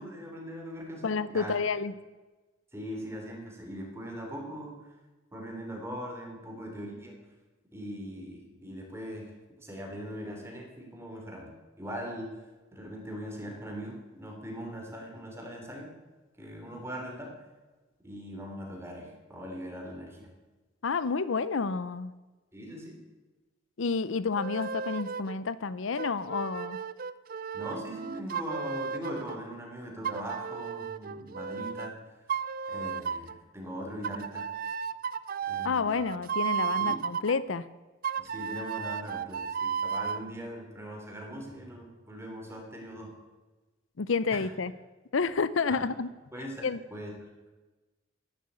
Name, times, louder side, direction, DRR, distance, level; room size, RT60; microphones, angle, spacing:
voice 1, 0.0-1.6 2.7-4.8 5.3-7.1 7.7-9.3 9.6-11.5 11.8-12.3 12.7-15.9 16.4-17.3 18.0-20.3 22.5-23.0 27.5-32.0 32.7-34.5 35.5-36.0 36.8-37.0 38.2-43.1 44.3-44.4 45.7-45.9 46.3-47.1, equal, 15° right, 0 dB, 3.3 m, -40 dB
voice 2, 1.0-1.9 20.8-22.1 23.8-26.8 35.6-37.7 44.0-44.7 45.1-46.1 46.6-46.8, left 4 dB, 80° left, 16 dB, 0.6 m, -29 dB
sound 1, 24.4-25.4 25.9-29.4 30.0-31.9 32.3-33.4 34.0-37.3 38.0-40.2, right 7 dB, 45° right, 0.5 m, -34 dB
11.5 x 10.5 x 8.2 m, 1.2 s
head